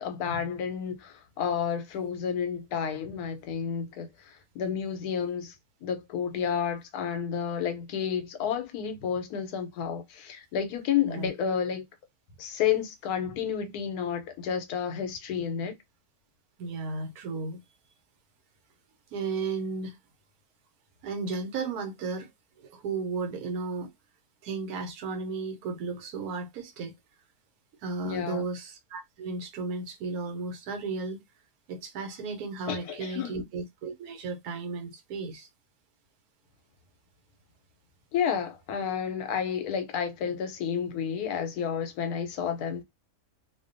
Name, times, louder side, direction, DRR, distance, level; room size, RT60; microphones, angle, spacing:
voice 1, 0.0-5.5 5.8-11.8 12.4-15.7 28.0-28.5 32.7-33.4 38.1-42.8, left 7 dB, 90° left, 1.1 m, -31 dB
voice 2, 16.6-17.6 19.1-20.0 21.0-22.3 22.6-23.9 24.4-26.9 27.8-31.2 31.7-35.5, right 4 dB, 80° right, 1.1 m, -34 dB
2.6 x 2.1 x 2.5 m
omnidirectional pair, 1.6 m